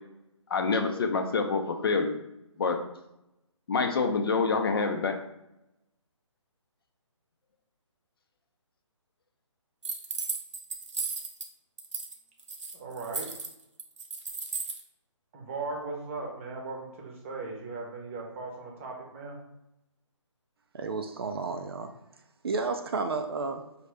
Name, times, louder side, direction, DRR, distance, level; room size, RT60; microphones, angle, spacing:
voice 1, 0.5-2.1 2.6-2.8 3.7-5.1, left 4 dB, 50° left, 6 dB, 0.6 m, -26 dB
sound 1, 9.8-11.5 11.8-12.1 12.4-14.8, right 4 dB, 70° right, 0.8 m, -35 dB
voice 2, 12.7-13.3 15.3-19.4, right 3 dB, 25° right, 0 dB, 0.8 m, -38 dB
voice 3, 20.7-21.9 22.4-23.7, right 4 dB, 50° right, 6 dB, 0.4 m, -32 dB
5.0 x 2.7 x 3.3 m, 0.86 s
figure-of-eight pair, 145°, 16 cm